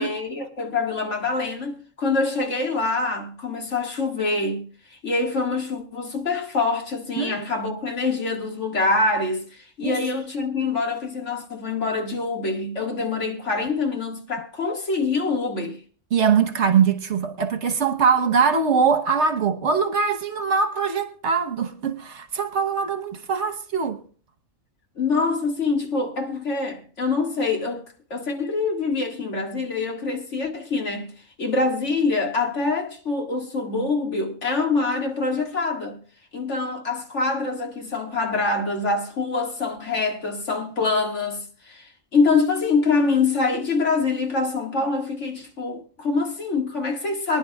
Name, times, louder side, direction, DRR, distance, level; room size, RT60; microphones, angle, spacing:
voice 1, 0.0-4.7 4.9-15.8 25.0-27.8 28.1-31.1 31.4-36.0 36.3-47.4, left 3 dB, 65° left, 2.3 m, -25 dB
voice 2, 16.1-24.0, right 6 dB, 65° right, 1.4 m, -22 dB
24.0 x 10.5 x 2.3 m
omnidirectional pair, 1.3 m